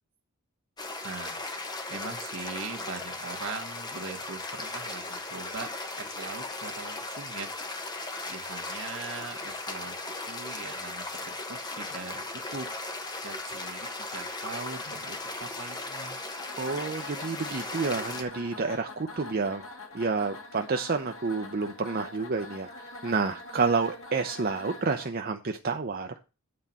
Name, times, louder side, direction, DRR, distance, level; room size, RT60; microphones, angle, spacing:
sound 1, 0.8-18.2, left 2 dB, 20° left, 1.2 m, -37 dB
voice 1, 1.0-1.4 1.9-5.7 6.0-7.5 8.3-9.9 10.3-12.2 12.5-12.7 13.2-16.2, right 4 dB, 65° right, 3 dB, 1.5 m, -41 dB
sound 2, 16.4-25.1, left 2 dB, 75° left, 2.0 m, -44 dB
voice 2, 16.6-19.6 19.9-22.7 23.0-26.1, right 4 dB, 45° right, 5 dB, 0.7 m, -29 dB
9.5 x 4.1 x 7.3 m, 0.31 s
head